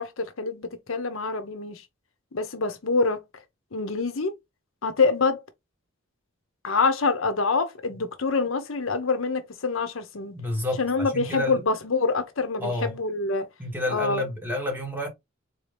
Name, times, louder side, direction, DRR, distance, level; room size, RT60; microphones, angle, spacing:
voice 1, 0.0-1.8 2.3-3.2 3.7-4.3 4.8-5.4 6.6-10.3 10.8-13.5 13.9-14.3, left 4 dB, 70° left, 0.8 m, -26 dB
voice 2, 10.3-11.6 12.6-13.0 13.6-15.1, left 1 dB, 10° right, 1.4 m, -30 dB
4.0 x 2.8 x 3.3 m
head